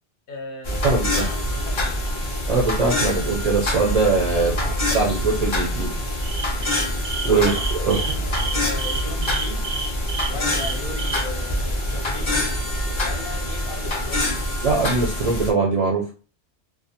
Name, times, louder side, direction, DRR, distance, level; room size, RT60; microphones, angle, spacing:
voice 1, 0.3-2.1 4.4-5.1 7.3-9.7 10.0-12.4 13.0-14.3, left 2 dB, 60° left, 3 dB, 0.7 m, -37 dB
sound 1, 0.6-15.5, left 1 dB, 40° left, 0.4 m, -25 dB
voice 2, 0.8-1.2 2.5-4.5 4.9-6.0 7.2-8.0 14.6-16.0, right 4 dB, 55° right, -3 dB, 0.4 m, -21 dB
sound 2, 6.2-11.2, right 5 dB, 90° right, 0.9 m, -30 dB
2.3 x 2.1 x 2.8 m, 0.37 s
omnidirectional pair, 1.1 m